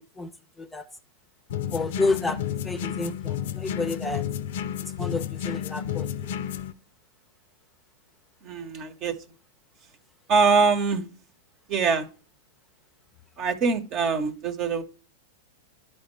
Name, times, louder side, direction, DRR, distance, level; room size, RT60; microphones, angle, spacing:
sound 1, 1.5-6.7, left 9 dB, 65° left, 0.6 m, -31 dB
voice 1, 1.7-2.4 2.6-4.2 5.0-6.3, left 3 dB, 10° left, 0.7 m, -30 dB
voice 2, 8.4-9.1 10.3-11.1 11.7-12.1 13.4-14.8, right 4 dB, 40° right, 1.0 m, -23 dB
11.0 x 4.4 x 3.2 m
hypercardioid pair, 110°, 0 cm